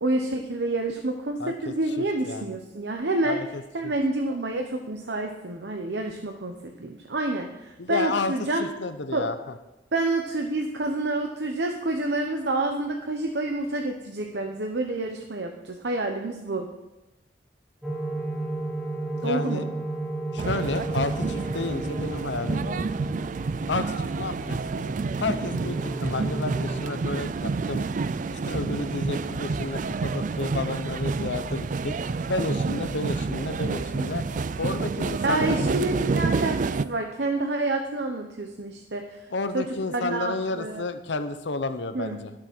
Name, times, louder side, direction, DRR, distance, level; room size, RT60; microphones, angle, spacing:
voice 1, 0.0-3.4 3.7-8.6 9.1-9.3 9.9-16.7 19.2-19.7 35.2-39.2 39.5-40.8 41.9-42.2, right 2 dB, 70° right, 3 dB, 0.9 m, -28 dB
voice 2, 1.4-2.5 3.2-3.9 7.8-8.3 8.6-9.5 19.1-19.6 20.3-22.9 23.7-24.8 25.2-27.9 28.3-32.0 32.3-35.7 39.3-42.3, left 3 dB, 90° left, 10 dB, 0.8 m, -31 dB
sound 1, 17.8-26.8, right 2 dB, 5° right, 1.4 m, -33 dB
sound 2, 20.4-36.8, right 4 dB, 45° right, 0.4 m, -29 dB
12.5 x 7.4 x 6.1 m, 0.98 s
head